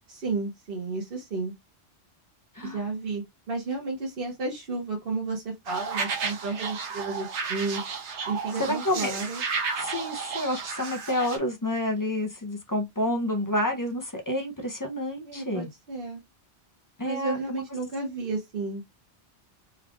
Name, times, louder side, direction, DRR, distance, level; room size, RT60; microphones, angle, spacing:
voice 1, 0.1-1.5 2.6-7.8 8.3-9.4 15.2-16.2 17.0-18.8, right 3 dB, 55° right, 1.1 m, -32 dB
sound 1, 5.7-11.4, right 5 dB, 85° right, 1.1 m, -32 dB
voice 2, 8.6-9.2 9.8-15.7 17.0-17.6, left 1 dB, 25° left, 0.5 m, -29 dB
3.5 x 2.4 x 3.5 m
omnidirectional pair, 1.2 m